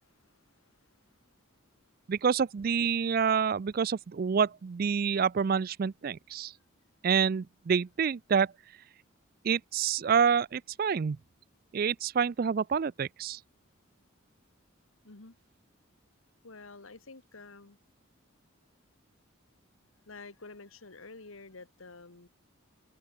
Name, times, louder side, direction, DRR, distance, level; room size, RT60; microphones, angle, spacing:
voice 1, 0.1-1.0 15.0-15.4 16.4-17.8 20.1-22.3, left 3 dB, 80° left, 1.8 m, -50 dB
voice 2, 2.1-6.5 7.0-8.5 9.4-11.2 11.7-13.4, right 6 dB, 45° right, 0.4 m, -27 dB
head